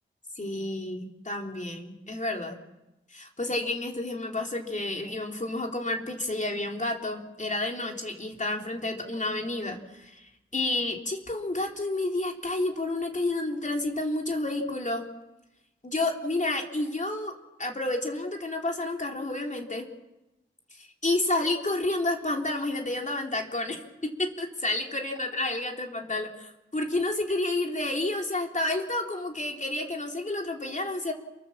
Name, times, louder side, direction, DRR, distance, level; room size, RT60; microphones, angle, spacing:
voice 1, 0.4-2.6 3.1-15.0 15.8-17.3 17.6-19.9 20.7-31.1, left 2 dB, 35° left, 2 dB, 3.6 m, -30 dB
28.5 x 22.5 x 7.3 m, 0.95 s
wide cardioid pair, 80°, 21 cm